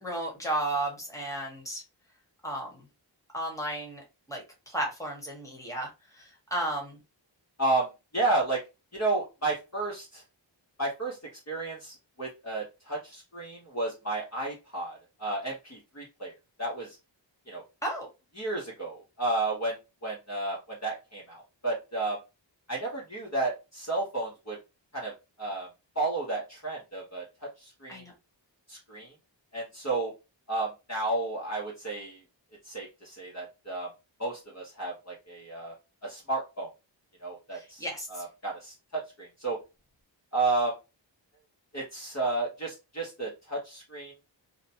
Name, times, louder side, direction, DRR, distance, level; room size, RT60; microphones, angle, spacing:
voice 1, 0.0-1.8 2.4-2.8 3.3-4.0 4.3-7.0 17.8-18.1 27.9-28.1 37.5-38.2, right 1 dB, 5° left, 0 dB, 1.3 m, -34 dB
voice 2, 7.6-8.6 8.9-10.2 10.8-11.2 11.5-16.3 16.6-17.0 17.5-17.6 18.4-19.8 20.0-22.2 22.7-24.6 24.9-25.1 25.4-25.7 25.9-28.0 28.7-29.1 29.5-30.1 30.5-32.2 32.6-33.9 34.2-35.7 36.0-36.7 37.2-39.6 40.3-40.8 41.7-44.1, right 2 dB, 35° left, -3 dB, 1.0 m, -32 dB
2.8 x 2.1 x 2.7 m, 0.27 s
wide cardioid pair, 45°, 46 cm